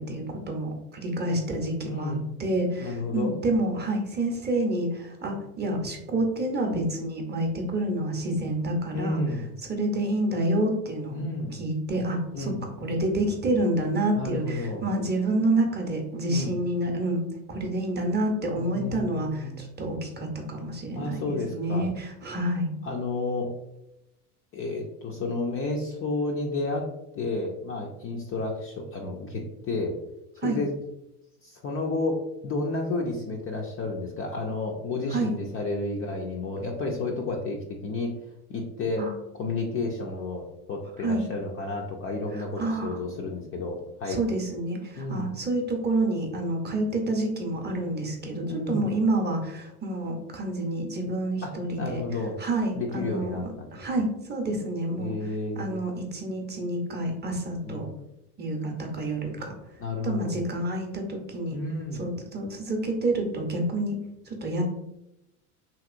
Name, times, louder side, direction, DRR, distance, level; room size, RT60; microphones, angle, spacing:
voice 1, 0.0-2.1 2.4-9.2 9.7-11.1 11.5-17.2 17.5-22.7 30.4-30.6 35.1-35.3 39.0-39.1 41.0-41.2 42.6-43.0 44.1-52.0 52.4-55.1 55.6-57.9 58.4-59.5 60.0-61.6 62.0-64.0 64.3-64.6, right 1 dB, 20° right, 2 dB, 0.6 m, -28 dB
voice 2, 1.8-2.2 2.8-3.3 8.9-9.5 11.1-11.6 12.3-12.6 14.2-14.8 16.3-16.5 18.6-19.6 20.9-21.9 22.8-23.5 24.5-26.9 27.2-30.0 30.4-30.7 31.4-38.1 38.5-39.1 39.3-44.2 45.0-45.3 48.4-48.9 51.4-52.4 52.8-53.7 55.0-55.7 57.6-57.9 59.4-59.5 59.8-60.4 61.5-62.1, left 2 dB, 30° left, 0 dB, 0.4 m, -31 dB
2.9 x 2.9 x 2.4 m, 0.86 s
hypercardioid pair, 85°, 46 cm